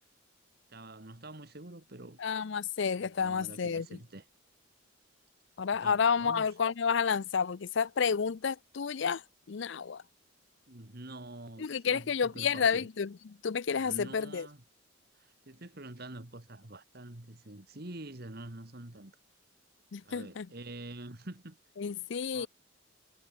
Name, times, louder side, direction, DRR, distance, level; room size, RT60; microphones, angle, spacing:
voice 1, 0.7-2.2 3.0-4.2 5.7-6.5 10.7-12.9 13.8-14.6 15.2-19.2 20.0-21.6 22.3-22.5, right 2 dB, 50° right, 2.0 m, -46 dB
voice 2, 2.2-3.9 5.6-9.2 9.5-10.0 11.6-14.5 19.9-20.5 21.8-22.5, left 6 dB, 60° left, 0.5 m, -30 dB
head